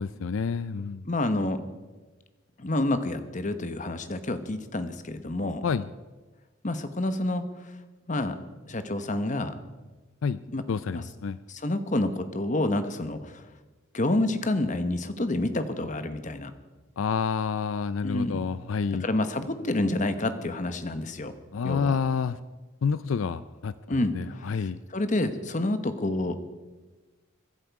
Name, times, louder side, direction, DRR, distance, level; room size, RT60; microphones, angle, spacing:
voice 1, 0.0-1.0 5.6-5.9 10.2-10.4 10.7-11.4 17.0-19.1 21.5-22.4 22.8-24.8, left 5 dB, 75° left, 15 dB, 0.4 m, -29 dB
voice 2, 1.0-1.6 2.6-5.6 6.6-7.5 8.1-8.4 8.7-9.6 10.5-10.6 10.9-11.0 11.5-13.4 13.9-16.5 18.0-18.4 19.0-21.3 21.6-22.0 23.9-24.1 24.5-26.3, left 2 dB, 40° left, 10 dB, 1.1 m, -28 dB
24.0 x 11.0 x 4.8 m, 1.2 s
head